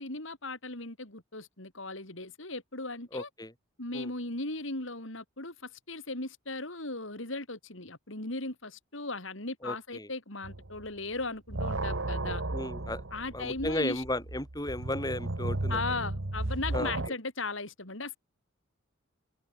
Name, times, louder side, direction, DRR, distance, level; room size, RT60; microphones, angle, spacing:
voice 1, 0.0-3.3 3.8-12.4 13.1-14.0 15.7-18.2, left 2 dB, 65° left, 4.6 m, -37 dB
voice 2, 3.1-3.5 3.9-4.1 9.6-10.1 12.5-13.0 13.3-15.8 16.7-16.9, left 1 dB, 20° left, 7.7 m, -34 dB
sound 1, 10.4-10.9 11.2-17.1, right 2 dB, 65° right, 1.6 m, -34 dB
head